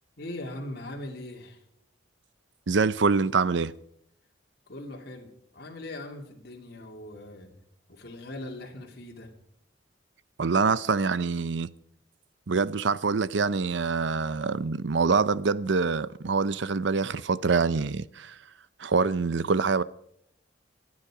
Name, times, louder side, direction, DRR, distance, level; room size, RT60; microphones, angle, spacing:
voice 1, 0.2-1.6 4.7-7.6 7.9-9.3, left 1 dB, 55° left, 2.6 m, -40 dB
voice 2, 2.7-3.7 10.4-11.7 12.5-18.3 18.8-19.8, right 4 dB, 70° right, 0.6 m, -25 dB
26.0 x 9.6 x 4.9 m
head